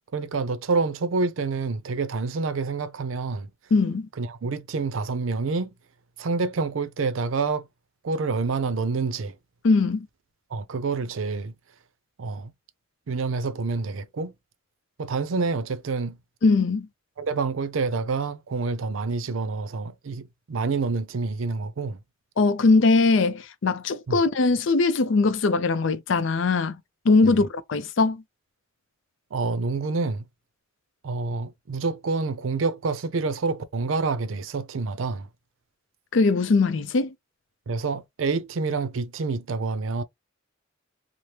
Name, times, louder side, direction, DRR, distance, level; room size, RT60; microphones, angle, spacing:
voice 1, 0.1-3.5 4.2-5.7 6.2-7.7 8.0-9.3 10.5-11.5 12.2-12.5 13.1-14.3 15.0-16.2 17.2-22.0 24.1-24.2 27.4-27.5 29.3-30.2 31.0-35.3 37.7-40.0, right 4 dB, 80° right, 0.5 m, -27 dB
voice 2, 3.7-4.1 9.6-10.1 16.4-16.9 22.4-28.2 36.1-37.1, left 3 dB, 65° left, 0.5 m, -21 dB
3.2 x 2.0 x 2.8 m
head